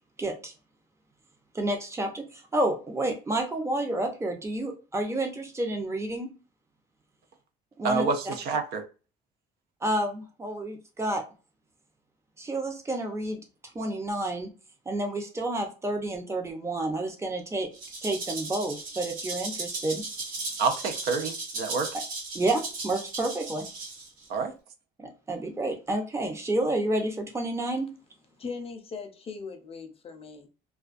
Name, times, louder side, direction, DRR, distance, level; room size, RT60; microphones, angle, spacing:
voice 1, 0.2-0.5 1.5-6.3 7.8-8.1 9.8-11.2 12.4-13.4 13.7-14.5 14.9-17.7 18.0-20.0 22.3-23.7 25.0-27.9, right 1 dB, 15° right, 0.6 m, -30 dB
voice 2, 7.8-8.8 20.6-22.0 24.3-24.5, right 4 dB, 75° right, 0.5 m, -28 dB
Rattle (instrument), 17.7-24.3, right 3 dB, 55° right, 1.0 m, -36 dB
voice 3, 28.4-30.5, left 4 dB, 35° left, 0.5 m, -39 dB
2.2 x 2.2 x 2.5 m
cardioid pair, 110°, 17 cm